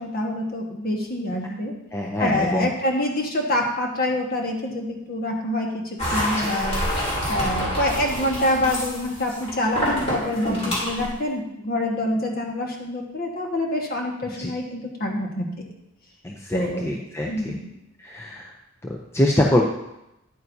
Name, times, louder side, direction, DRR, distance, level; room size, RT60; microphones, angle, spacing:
voice 1, 0.0-1.7 2.2-5.8 6.1-6.8 7.3-15.5 16.5-17.0 17.3-17.8, left 1 dB, 45° left, 1 dB, 1.4 m, -26 dB
voice 2, 1.9-2.7 6.3-6.7 10.5-10.8 14.4-14.5 16.2-17.5 18.0-18.5 18.8-19.6, left 1 dB, 10° left, 0 dB, 0.5 m, -25 dB
sound 1, 6.0-11.1, equal, 30° left, 3.0 m, -27 dB
9.7 x 9.0 x 2.7 m, 0.87 s
head